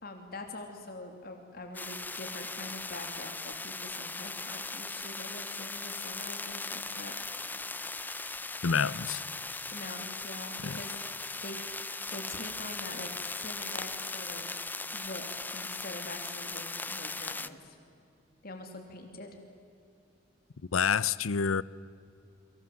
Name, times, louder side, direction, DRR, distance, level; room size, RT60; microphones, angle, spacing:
voice 1, 0.0-7.1 9.7-11.0 11.4-11.6 12.1-14.5 14.9-17.8 18.4-19.4, left 2 dB, 45° left, 2.9 m, -44 dB
Splashy Electric, 1.7-17.5, left 3 dB, 10° left, 0.6 m, -39 dB
voice 2, 8.6-9.2 10.6-10.8 20.7-21.6, left 6 dB, 90° left, 0.7 m, -28 dB
29.5 x 24.5 x 7.8 m
head